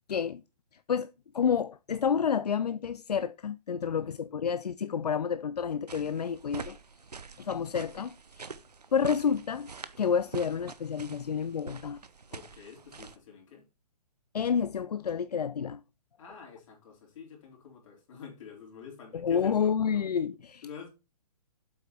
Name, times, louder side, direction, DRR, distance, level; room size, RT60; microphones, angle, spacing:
voice 1, 0.1-0.4 0.9-6.8 7.4-8.5 8.9-9.7 10.0-12.0 14.3-15.8 19.1-20.6, left 7 dB, 80° left, 0.4 m, -29 dB
voice 2, 3.8-4.3 12.3-13.6 16.2-19.7 20.6-20.9, left 6 dB, 50° left, 4.1 m, -47 dB
sound 1, 5.9-13.2, right 5 dB, 90° right, 0.7 m, -45 dB
7.9 x 5.7 x 4.4 m
figure-of-eight pair, 125°, 20 cm